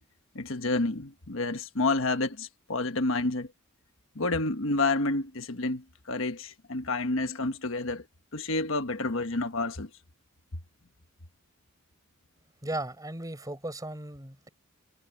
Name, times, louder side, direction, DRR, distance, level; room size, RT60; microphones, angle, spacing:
voice 1, 0.3-3.5 4.1-8.0 8.3-9.9, left 2 dB, 70° left, 1.4 m, -29 dB
voice 2, 12.6-14.5, right 1 dB, 15° right, 6.1 m, -36 dB
head